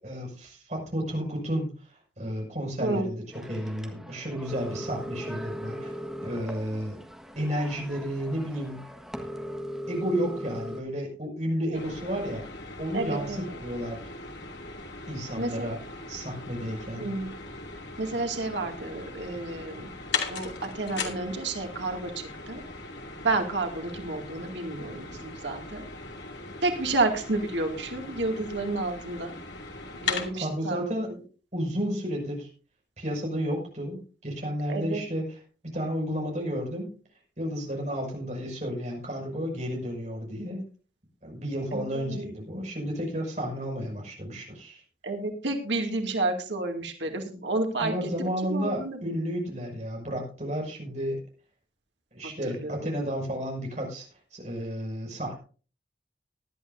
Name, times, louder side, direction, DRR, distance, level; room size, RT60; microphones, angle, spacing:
voice 1, 0.0-3.2 3.5-5.9 6.2-7.0 7.3-8.8 9.9-12.5 12.8-14.0 15.1-15.8 16.1-17.1 30.3-31.1 31.5-32.5 33.0-35.2 35.7-36.9 37.4-40.6 41.2-44.8 47.8-51.2 52.1-54.1 54.3-55.4, equal, 40° right, 0 dB, 5.9 m, -32 dB
voice 2, 2.8-3.1 11.7-11.8 12.9-13.6 15.4-15.8 16.9-17.3 18.0-19.9 20.3-22.6 23.2-25.9 26.6-29.3 29.9-30.9 34.7-35.0 41.7-42.4 45.0-48.1 48.5-49.0 52.4-53.2, right 2 dB, 90° right, 3 dB, 2.3 m, -30 dB
sound 1, 3.3-10.8, equal, ahead, 1.4 m, -39 dB
sound 2, 11.7-30.3, left 4 dB, 80° left, 2.7 m, -39 dB
18.5 x 11.5 x 2.7 m, 0.38 s
head